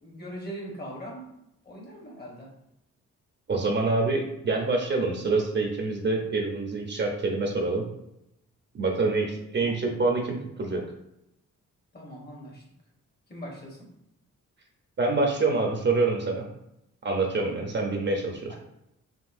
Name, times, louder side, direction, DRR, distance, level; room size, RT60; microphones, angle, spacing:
voice 1, 0.0-1.3 1.6-2.5 9.6-9.7 11.9-12.6 13.3-13.9 17.4-17.7 18.5-18.6, equal, 30° left, -1 dB, 1.2 m, -41 dB
voice 2, 3.5-7.9 8.7-10.8 15.0-16.5 17.0-18.5, right 3 dB, 35° right, 1 dB, 0.7 m, -26 dB
5.4 x 2.7 x 2.6 m, 0.83 s
cardioid pair, 100°, 31 cm